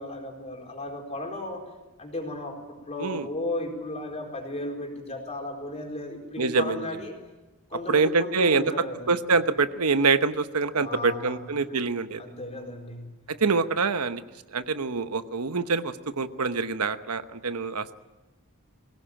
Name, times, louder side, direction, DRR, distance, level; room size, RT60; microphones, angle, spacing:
voice 1, 0.0-1.6 2.0-7.2 7.7-9.2 10.8-11.4 12.2-13.2, left 1 dB, 30° left, 2 dB, 4.4 m, -35 dB
voice 2, 6.4-6.9 7.9-8.6 9.1-12.2 13.3-14.2 14.5-17.9, right 4 dB, 90° right, 11 dB, 1.0 m, -25 dB
21.5 x 17.0 x 8.9 m, 1.1 s
head